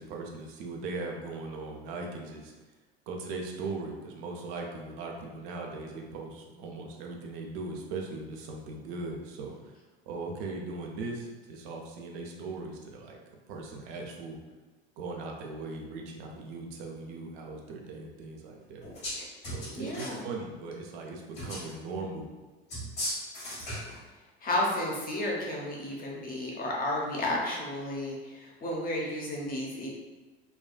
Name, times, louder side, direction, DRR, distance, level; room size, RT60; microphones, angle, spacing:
voice 1, 0.0-2.5 3.1-9.7 10.1-13.2 13.5-14.4 15.0-18.8 19.4-22.3, right 3 dB, 55° right, 0 dB, 0.5 m, -39 dB
sound 1, 18.8-19.2 19.4-20.2 21.3-21.7 22.7-24.0, equal, 65° left, 1.5 m, -36 dB
voice 2, 19.7-20.2 24.4-29.9, left 1 dB, 30° left, -2 dB, 0.8 m, -32 dB
3.5 x 2.3 x 2.2 m, 1.2 s
figure-of-eight pair, 75°, 31 cm